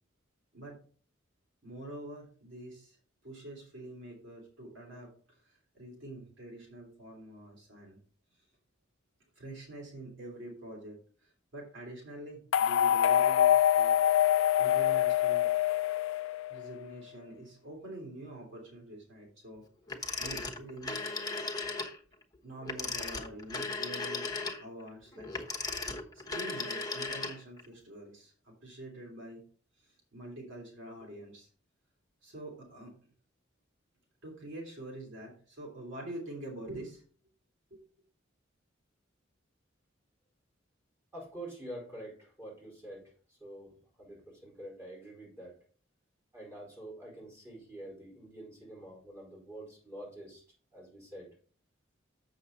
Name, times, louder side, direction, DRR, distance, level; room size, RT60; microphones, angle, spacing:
voice 1, 1.6-3.0 3.2-8.0 8.3-8.5 9.3-13.9 14.6-15.5 16.5-19.6 20.2-21.1 22.4-24.3 24.6-25.3 26.1-29.4 29.8-31.5 32.2-33.0 34.2-37.0 37.7-37.8, right 1 dB, 70° right, -1 dB, 3.0 m, -46 dB
sound 1, 12.5-16.7, left 11 dB, 85° left, 0.3 m, -25 dB
Telephone, 19.9-22.0 22.6-27.7, left 3 dB, 20° left, 1.1 m, -36 dB
voice 2, 41.1-45.6 46.3-50.4 50.7-51.3, right 1 dB, 15° right, -4 dB, 4.6 m, -47 dB
7.6 x 6.5 x 4.1 m, 0.43 s
head